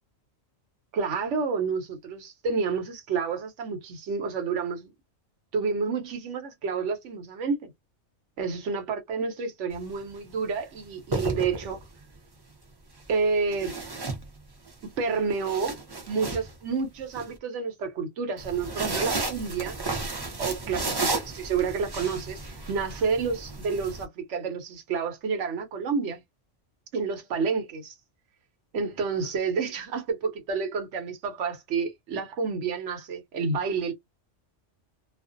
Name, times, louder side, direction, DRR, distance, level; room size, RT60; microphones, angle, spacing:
voice 1, 0.9-4.9 5.5-7.7 8.4-11.8 13.1-13.7 14.8-15.8 16.1-19.8 20.4-22.4 22.7-26.2 26.9-27.9 28.7-33.9, right 5 dB, 80° right, 1.1 m, -29 dB
sound 1, 9.7-10.0 10.9-12.0 13.5-14.7 15.1-17.2 18.4-24.0, right 3 dB, 30° right, 0.5 m, -33 dB
2.5 x 2.0 x 2.4 m
omnidirectional pair, 1.2 m